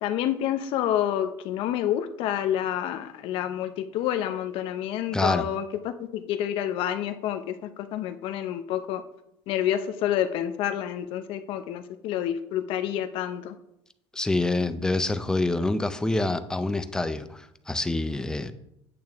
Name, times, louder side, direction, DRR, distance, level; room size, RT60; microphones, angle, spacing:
voice 1, 0.0-7.6 7.9-9.0 9.5-13.5, left 11 dB, 55° left, 8 dB, 0.6 m, -28 dB
voice 2, 5.1-5.5 14.1-18.5, left 2 dB, 5° left, 11 dB, 0.4 m, -26 dB
8.6 x 8.5 x 3.5 m, 0.80 s
cardioid pair, 155°, 11 cm